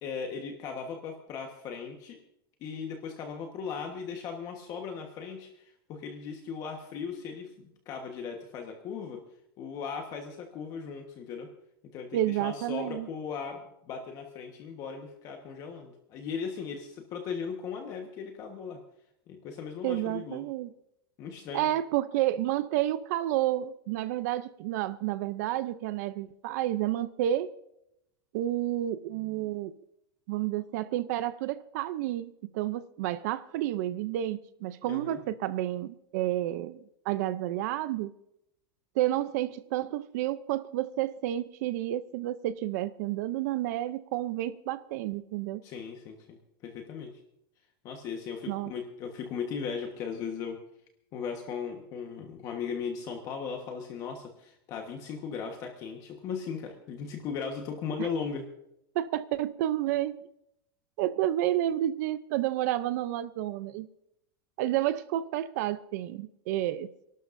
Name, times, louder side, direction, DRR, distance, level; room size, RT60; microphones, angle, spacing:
voice 1, 0.0-2.2 2.6-9.2 9.6-11.5 11.9-18.8 19.3-20.4 21.2-21.7 34.8-35.2 45.6-47.1 47.8-50.6 51.1-58.4, left 6 dB, 30° left, 1.2 m, -37 dB
voice 2, 12.1-13.1 19.8-20.7 21.5-27.5 28.3-29.7 30.3-36.8 37.1-38.1 39.0-45.6 48.5-48.7 58.0-58.1 58.9-60.2 61.0-63.9 64.6-66.9, right 13 dB, 50° right, 0.5 m, -30 dB
29.0 x 12.0 x 2.6 m
supercardioid pair, 175°, 12 cm